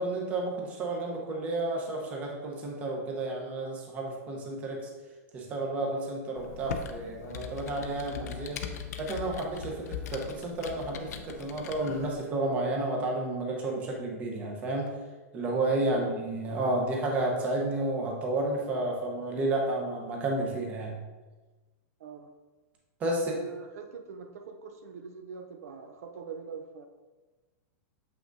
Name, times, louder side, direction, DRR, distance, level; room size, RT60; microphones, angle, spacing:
voice 1, 0.0-4.9 5.3-8.6 9.0-14.9 15.3-21.0 23.0-23.3, right 2 dB, 15° right, -1 dB, 0.8 m, -31 dB
Computer keyboard, 6.4-12.2, left 7 dB, 85° left, 0.7 m, -40 dB
voice 2, 22.0-22.3 23.1-26.9, right 6 dB, 70° right, 5 dB, 0.6 m, -42 dB
7.4 x 5.7 x 2.6 m, 1.2 s
supercardioid pair, 175°, 9 cm